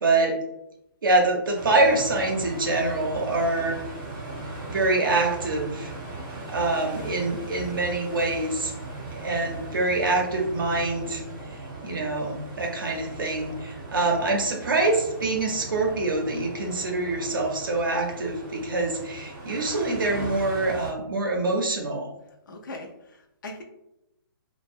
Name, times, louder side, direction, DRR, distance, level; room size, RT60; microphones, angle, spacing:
voice 1, 0.0-0.4 1.0-3.8 4.7-5.9 6.5-8.7 9.1-11.2 11.5-22.1, right 2 dB, 60° right, 0 dB, 0.5 m, -25 dB
sound 1, 1.5-20.9, right 2 dB, 15° right, 0.4 m, -38 dB
voice 2, 22.5-23.6, left 2 dB, 55° left, 4 dB, 0.4 m, -40 dB
2.6 x 2.0 x 2.4 m, 0.84 s
hypercardioid pair, 180°, 12 cm